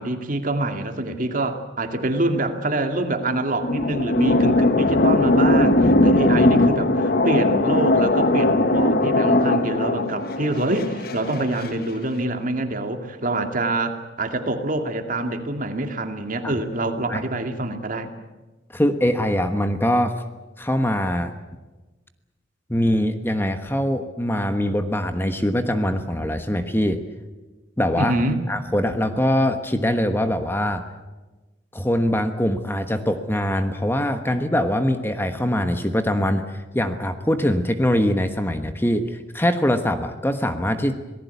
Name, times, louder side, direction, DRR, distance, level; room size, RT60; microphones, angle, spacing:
voice 1, 0.0-18.1 28.0-28.4, right 2 dB, 45° right, 6 dB, 2.4 m, -25 dB
sound 1, 3.2-11.7, left 2 dB, 55° left, 1.3 m, -19 dB
voice 2, 18.7-20.1 20.6-21.3 22.7-27.0 27.8-28.1 28.5-30.8 31.7-40.9, equal, 10° left, 8 dB, 1.3 m, -22 dB
26.5 x 18.5 x 8.4 m, 1.2 s
head